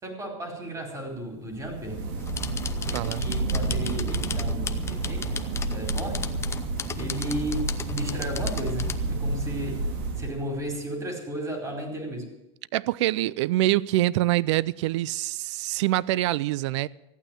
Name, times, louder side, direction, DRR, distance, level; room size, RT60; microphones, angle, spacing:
voice 1, 0.0-2.0 2.9-6.3 6.9-9.9 10.1-12.3, right 1 dB, 20° right, 4.5 m, -34 dB
sound 1, 1.5-10.7, right 2 dB, 60° right, 2.4 m, -30 dB
sound 2, 2.2-9.0, left 6 dB, 15° left, 0.8 m, -37 dB
voice 2, 12.7-16.9, right 16 dB, 75° right, 0.5 m, -25 dB
14.5 x 9.1 x 9.1 m
supercardioid pair, 125°, 15 cm